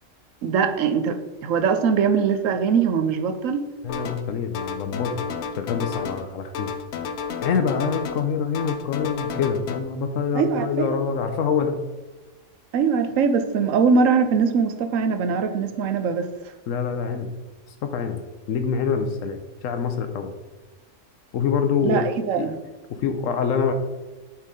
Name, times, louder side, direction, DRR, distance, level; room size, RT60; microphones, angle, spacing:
voice 1, 0.4-3.7 10.3-10.9 12.7-16.3 21.8-22.6, right 6 dB, 85° right, 9 dB, 1.1 m, -22 dB
voice 2, 3.8-5.2 5.6-6.7 7.4-11.8 16.7-17.3 17.8-18.2 18.5-20.3 21.3-22.0 22.4-22.5 22.9-23.7, left 6 dB, 85° left, 7 dB, 1.1 m, -25 dB
sound 1, 3.9-4.3 4.5-6.3 6.5-8.3 8.5-9.8, left 6 dB, 65° left, 0.8 m, -32 dB
8.6 x 4.6 x 3.7 m, 1.2 s
omnidirectional pair, 1.3 m